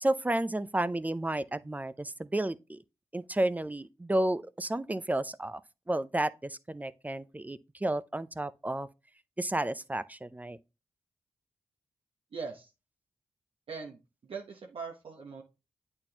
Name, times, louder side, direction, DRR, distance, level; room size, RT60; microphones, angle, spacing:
voice 1, 0.0-2.8 3.1-5.6 5.9-8.9 9.4-10.6, right 1 dB, 15° right, 0.5 m, -32 dB
voice 2, 12.3-12.7 13.7-14.0 14.3-15.4, right 5 dB, 65° right, 1.0 m, -40 dB
8.6 x 4.4 x 2.8 m
supercardioid pair, 45°, 10 cm